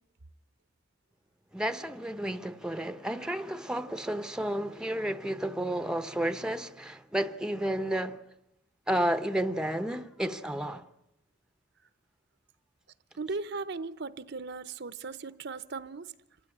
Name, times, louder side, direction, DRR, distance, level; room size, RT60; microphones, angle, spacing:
voice 1, 1.5-8.2 8.9-10.9, right 1 dB, 5° right, 0.9 m, -31 dB
voice 2, 13.2-16.1, right 4 dB, 60° right, 0.9 m, -37 dB
27.0 x 16.5 x 9.8 m
head